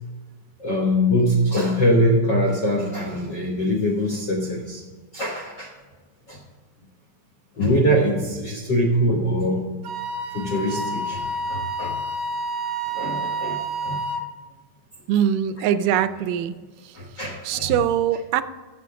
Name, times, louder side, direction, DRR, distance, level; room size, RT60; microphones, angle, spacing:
voice 1, 0.6-4.8 5.1-5.7 6.3-6.4 7.6-9.7 10.3-12.0 12.9-14.0 16.9-17.7, equal, 65° left, 0 dB, 1.1 m, -23 dB
Wind instrument woodwind instrument, 9.8-14.3, right 1 dB, 70° right, 1.4 m, -29 dB
voice 2, 15.1-16.6 16.8-17.0 17.4-18.4, right 10 dB, 85° right, 13 dB, 2.2 m, -22 dB
13.5 x 7.4 x 3.7 m, 1.4 s
omnidirectional pair, 3.8 m